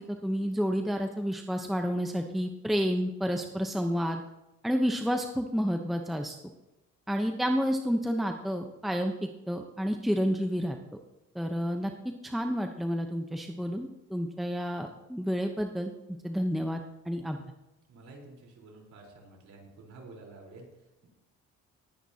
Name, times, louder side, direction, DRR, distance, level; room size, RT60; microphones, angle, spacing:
voice 1, 0.0-4.2 4.6-6.5 7.1-10.8 11.3-15.9 16.2-17.4, equal, ahead, 4 dB, 0.8 m, -30 dB
voice 2, 17.9-20.7, right 3 dB, 65° right, 0 dB, 4.1 m, -50 dB
20.0 x 9.1 x 2.8 m, 0.96 s
cardioid pair, 90°, 30 cm